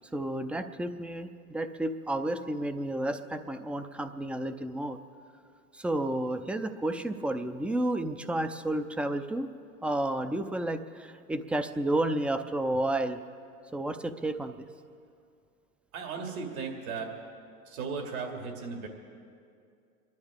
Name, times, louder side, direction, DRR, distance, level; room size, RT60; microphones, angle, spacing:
voice 1, 0.1-5.0 5.7-9.5 9.8-13.2 13.7-14.7, right 1 dB, 5° right, 9 dB, 0.4 m, -31 dB
voice 2, 15.9-17.1 17.6-18.9, right 5 dB, 70° right, 2 dB, 2.6 m, -36 dB
27.5 x 11.5 x 3.6 m, 2.4 s
hypercardioid pair, 100°, 45 cm